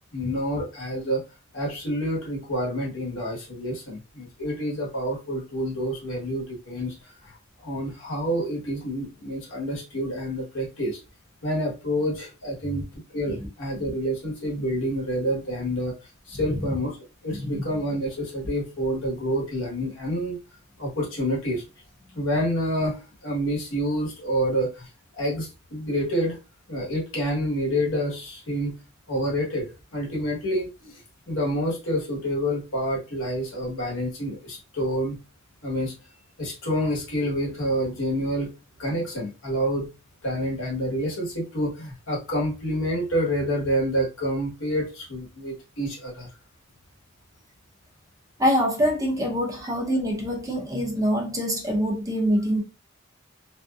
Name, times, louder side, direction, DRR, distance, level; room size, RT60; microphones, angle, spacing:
voice 1, 0.1-1.2 1.5-7.4 7.6-11.0 11.4-12.9 13.1-15.9 16.3-17.0 17.2-20.4 20.8-21.6 22.1-26.4 26.7-28.8 29.1-35.2 35.6-35.9 36.4-38.5 38.8-39.9 40.2-46.3, equal, 70° left, 1.1 m, -28 dB
voice 2, 48.4-52.6, equal, 15° right, 0.6 m, -25 dB
2.6 x 2.1 x 2.2 m
head